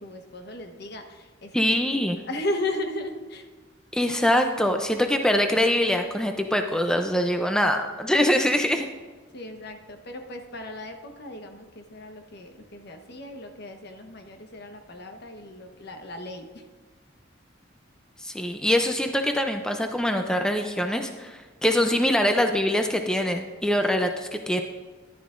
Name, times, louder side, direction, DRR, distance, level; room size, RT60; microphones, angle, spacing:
voice 1, 0.0-1.7 2.3-3.5 9.3-16.6, left 1 dB, 60° left, 5 dB, 1.0 m, -36 dB
voice 2, 1.5-2.2 3.9-8.9 18.2-24.6, left 1 dB, 5° left, 5 dB, 0.5 m, -23 dB
13.5 x 11.5 x 2.5 m, 1.3 s
head